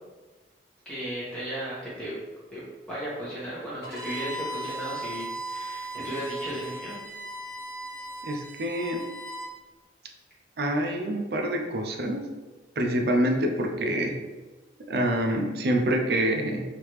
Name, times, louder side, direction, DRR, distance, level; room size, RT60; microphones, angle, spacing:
voice 1, 0.8-2.1 2.5-2.6 2.9-7.0, equal, 5° left, -9 dB, 1.2 m, -35 dB
Bowed string instrument, 3.8-9.5, right 1 dB, 60° left, 1.1 m, -37 dB
voice 2, 8.2-9.0 10.6-12.2 12.8-14.1 14.9-16.6, right 1 dB, 55° right, 3 dB, 0.5 m, -26 dB
3.3 x 2.9 x 3.0 m, 1.2 s
head